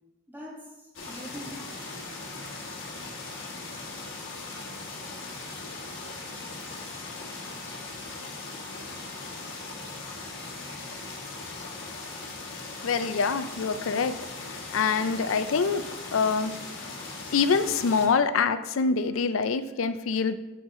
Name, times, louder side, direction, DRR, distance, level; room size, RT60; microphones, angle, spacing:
voice 1, 0.3-2.2 7.2-7.4, equal, 10° right, -4 dB, 1.8 m, -44 dB
sound 1, 0.9-18.1, left 3 dB, 65° left, 1.4 m, -39 dB
voice 2, 12.8-14.1 14.5-15.8 16.1-16.5 17.3-20.4, left 5 dB, 85° left, 11 dB, 0.5 m, -25 dB
7.3 x 5.9 x 3.7 m, 1.0 s
head